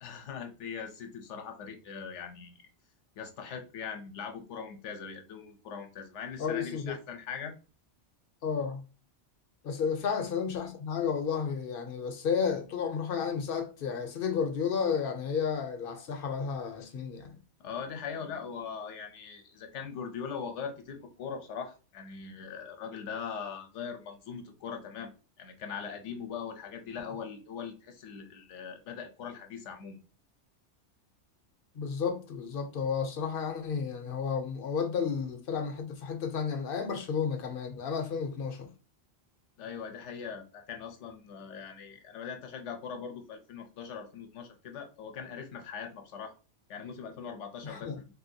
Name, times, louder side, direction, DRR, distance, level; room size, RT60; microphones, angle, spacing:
voice 1, 0.0-2.7 3.2-7.5 17.6-30.0 39.6-46.3 46.7-48.1, left 6 dB, 75° left, 1.0 m, -41 dB
voice 2, 6.4-7.0 8.4-8.8 9.6-17.4 31.7-38.7 47.6-48.0, left 6 dB, 55° left, 0.7 m, -32 dB
3.4 x 2.8 x 2.6 m
omnidirectional pair, 1.3 m